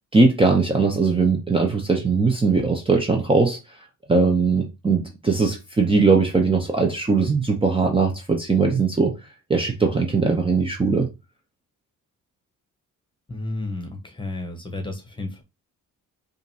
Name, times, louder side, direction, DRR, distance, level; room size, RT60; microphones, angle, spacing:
voice 1, 0.1-3.6 4.1-9.2 9.5-11.1, right 4 dB, 15° right, 0.7 m, -20 dB
voice 2, 13.3-15.4, left 2 dB, 15° left, 1.1 m, -32 dB
5.0 x 2.6 x 2.8 m
cardioid pair, 110°, 34 cm